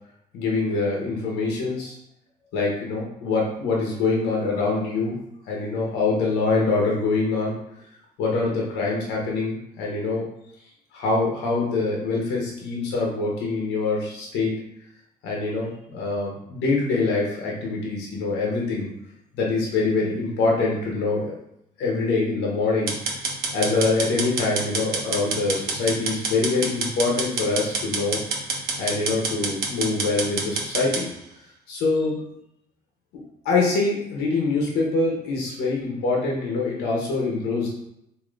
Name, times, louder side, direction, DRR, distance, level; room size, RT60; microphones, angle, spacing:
voice 1, 0.3-1.9 2.5-5.2 5.5-7.5 8.2-10.3 10.9-14.5 15.2-18.9 19.3-21.3 21.8-22.9 23.5-28.2 28.8-31.1 31.7-32.1 33.4-37.7, left 3 dB, 85° left, -3 dB, 1.0 m, -24 dB
sound 1, 22.9-31.0, right 4 dB, 60° right, 0.9 m, -27 dB
3.7 x 2.8 x 3.2 m, 0.79 s
cardioid pair, 110°, 17 cm